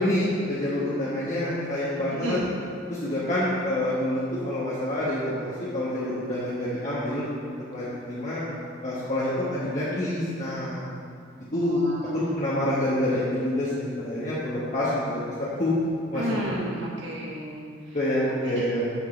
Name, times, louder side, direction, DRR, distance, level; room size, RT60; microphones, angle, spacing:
voice 1, 0.0-2.4 2.9-7.3 7.7-8.4 8.8-10.9 11.5-11.8 12.1-15.2 15.6-15.7 16.1-16.2 17.9-18.9, left 1 dB, 40° left, -9 dB, 1.4 m, -27 dB
voice 2, 2.1-2.5 11.6-12.4 16.1-18.0 18.4-18.7, equal, 85° right, -2 dB, 1.6 m, -33 dB
12.0 x 6.5 x 3.3 m, 2.3 s
head